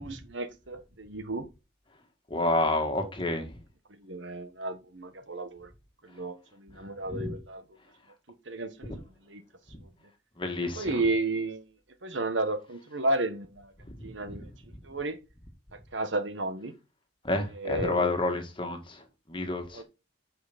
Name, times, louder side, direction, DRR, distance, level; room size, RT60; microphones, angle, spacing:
voice 1, 0.0-1.4 4.0-5.7 6.0-7.6 8.5-9.0 9.3-9.4 10.8-11.7 12.0-13.7 14.0-14.5 14.8-15.2 15.9-16.7 17.6-18.1 19.7-19.8, right 2 dB, 65° right, 1.3 m, -32 dB
voice 2, 2.3-3.6 6.7-7.4 8.9-9.0 9.7-9.8 10.4-11.0 14.3-14.5 17.2-19.8, left 2 dB, 25° left, 1.9 m, -30 dB
9.4 x 5.8 x 4.2 m
head